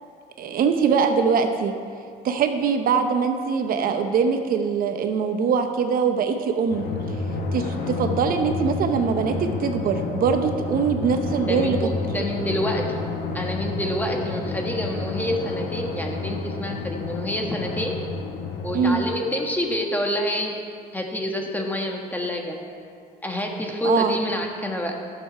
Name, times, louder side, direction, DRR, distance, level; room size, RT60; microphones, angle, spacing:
voice 1, 0.4-1.7 2.2-6.9 7.5-9.3 9.6-11.8 18.7-19.0 23.8-24.2, right 6 dB, 60° right, 6 dB, 0.8 m, -22 dB
Drum, 6.7-19.8, left 3 dB, 75° left, 1.4 m, -30 dB
voice 2, 11.5-13.0 13.3-18.0 18.6-20.6 20.9-22.6 23.2-25.0, left 1 dB, 10° left, 1 dB, 1.4 m, -27 dB
11.5 x 6.9 x 5.6 m, 2.3 s
cardioid pair, 110°, 17 cm